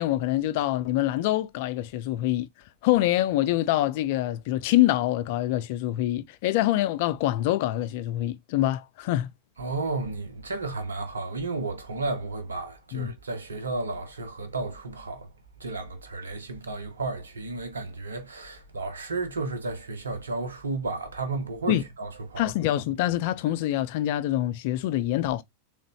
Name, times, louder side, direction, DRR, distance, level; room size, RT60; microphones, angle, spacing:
voice 1, 0.0-2.5 2.8-9.3 12.9-13.1 21.7-21.8 22.4-25.4, left 14 dB, 50° left, 0.4 m, -25 dB
voice 2, 9.6-15.3 15.6-22.4, right 3 dB, 75° right, 1.1 m, -33 dB
3.9 x 3.4 x 3.1 m
figure-of-eight pair, 90°, 0 cm